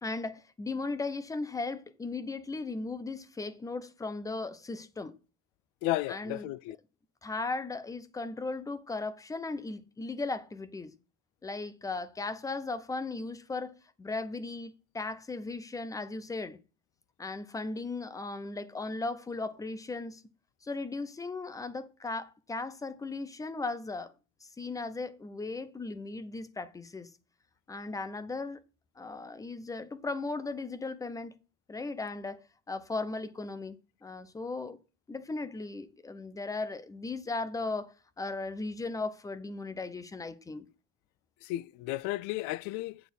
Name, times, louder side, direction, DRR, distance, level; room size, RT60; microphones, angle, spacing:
voice 1, 0.0-5.1 6.1-6.5 7.2-10.9 11.4-16.6 17.2-20.2 20.6-24.1 24.4-27.1 27.7-28.6 29.0-31.3 31.7-34.8 35.1-40.7, left 3 dB, 10° left, 0.6 m, -37 dB
voice 2, 5.8-6.8 41.4-43.0, left 16 dB, 70° left, 0.5 m, -33 dB
9.3 x 4.1 x 6.9 m
cardioid pair, 160°, 32 cm